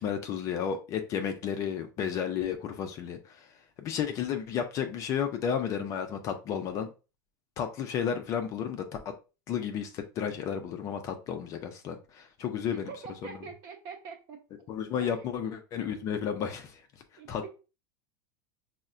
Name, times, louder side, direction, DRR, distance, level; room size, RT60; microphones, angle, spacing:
voice 1, 0.0-3.5 3.8-6.9 7.6-8.8 9.5-12.9 13.2-13.4 14.7-16.8 17.3-17.5, left 8 dB, 30° left, 0.4 m, -32 dB
voice 2, 12.7-14.4 15.0-15.3 17.2-17.5, right 5 dB, 40° right, 0.8 m, -44 dB
5.4 x 2.1 x 2.4 m
supercardioid pair, 160°, 10 cm